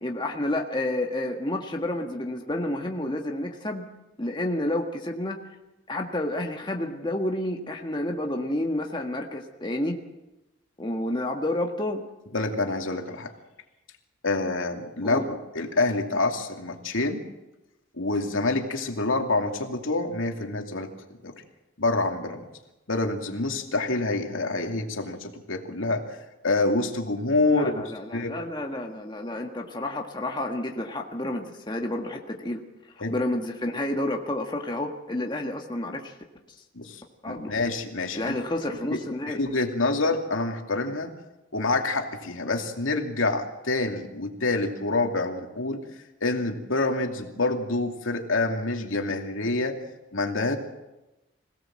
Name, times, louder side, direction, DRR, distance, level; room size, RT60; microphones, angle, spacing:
voice 1, 0.0-3.8 4.2-5.4 5.9-9.9 10.8-12.0 15.0-15.2 27.5-32.6 33.1-36.1 37.2-37.5 38.1-39.4, left 1 dB, 20° left, 2 dB, 1.7 m, -30 dB
voice 2, 12.3-13.3 14.2-17.2 18.0-20.9 21.2-21.3 21.8-22.4 22.9-26.0 26.4-27.8 28.1-28.4 33.0-33.1 36.7-38.3 38.9-39.0 39.3-41.1 41.5-45.8 46.2-49.8 50.1-50.6, left 2 dB, 80° left, 3 dB, 2.6 m, -27 dB
25.5 x 17.5 x 7.6 m, 1.0 s
head